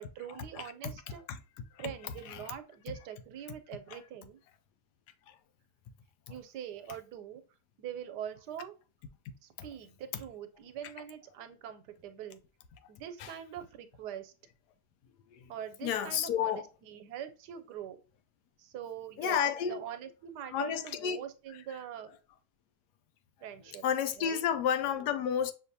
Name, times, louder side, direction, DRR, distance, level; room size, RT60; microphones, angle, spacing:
voice 1, 0.0-1.2 1.8-4.4 6.3-7.4 7.8-8.7 9.4-12.4 12.9-14.3 15.5-18.0 18.6-19.4 19.7-22.1 23.4-23.8 24.2-24.4, right 9 dB, 85° right, 1.2 m, -43 dB
voice 2, 0.5-0.9 1.3-1.4 1.7-2.5 3.9-4.0 5.3-5.4 13.2-13.3 15.3-15.5 15.8-16.7 19.2-19.8 20.5-21.2 23.8-25.5, left 8 dB, 85° left, 1.2 m, -31 dB
6.4 x 2.6 x 2.7 m
omnidirectional pair, 1.7 m